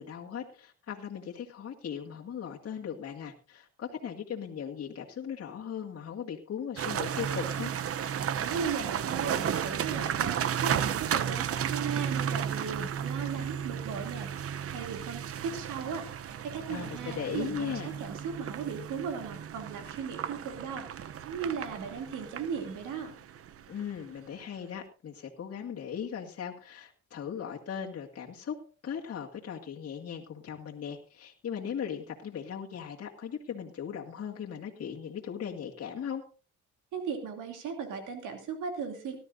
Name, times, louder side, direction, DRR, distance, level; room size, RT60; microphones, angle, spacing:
voice 1, 0.0-7.7 16.7-17.9 23.7-36.2, left 8 dB, 50° left, -1 dB, 2.0 m, -38 dB
sound 1, 6.8-23.9, right 8 dB, 50° right, 0.7 m, -34 dB
voice 2, 8.4-23.1 36.9-39.2, right 6 dB, 85° right, 5 dB, 2.8 m, -37 dB
18.5 x 12.5 x 2.6 m, 0.36 s
cardioid pair, 90°, 30 cm